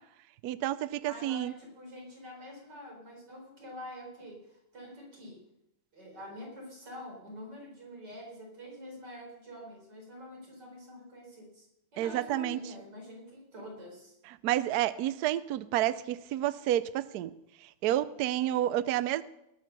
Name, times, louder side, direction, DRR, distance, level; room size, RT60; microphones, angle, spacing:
voice 1, 0.4-1.5 12.0-12.6 14.3-17.3 17.6-19.2, right 13 dB, 85° right, 16 dB, 0.8 m, -30 dB
voice 2, 1.1-5.4 5.9-11.7 11.9-14.1, left 1 dB, 50° right, 0 dB, 4.8 m, -46 dB
18.5 x 6.6 x 6.7 m, 0.84 s
omnidirectional pair, 2.3 m